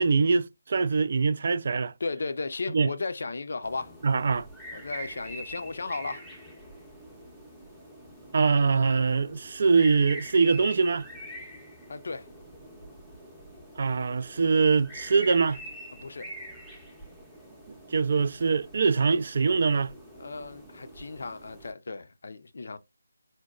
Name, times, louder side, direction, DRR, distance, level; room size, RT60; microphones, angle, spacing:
voice 1, 0.0-1.9 2.7-2.9 4.0-4.5 8.3-11.1 13.8-15.6 17.9-19.9, right 4 dB, 45° right, 0.3 m, -23 dB
voice 2, 2.0-4.0 4.7-6.3 11.9-12.3 15.9-16.3 20.1-22.8, left 3 dB, 60° left, 0.4 m, -35 dB
sound 1, 3.6-21.7, right 1 dB, ahead, 0.6 m, -45 dB
3.9 x 2.1 x 2.2 m
figure-of-eight pair, 160°, 0 cm